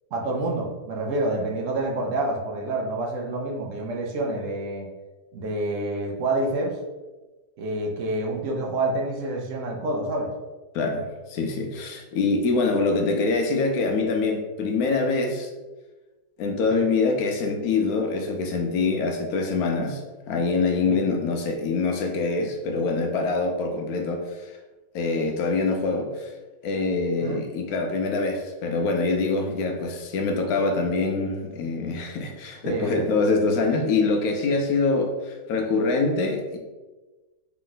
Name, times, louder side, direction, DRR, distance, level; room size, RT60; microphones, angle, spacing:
voice 1, 0.1-4.9 5.3-6.8 7.6-10.3 16.7-16.9 20.8-21.0 27.2-27.4 32.6-33.1, right 2 dB, 65° right, 0 dB, 0.8 m, -28 dB
voice 2, 10.7-15.5 16.4-20.0 20.3-24.5 24.9-26.3 26.6-36.6, left 3 dB, 70° left, 3 dB, 0.9 m, -24 dB
3.4 x 3.0 x 3.8 m, 1.2 s
omnidirectional pair, 2.0 m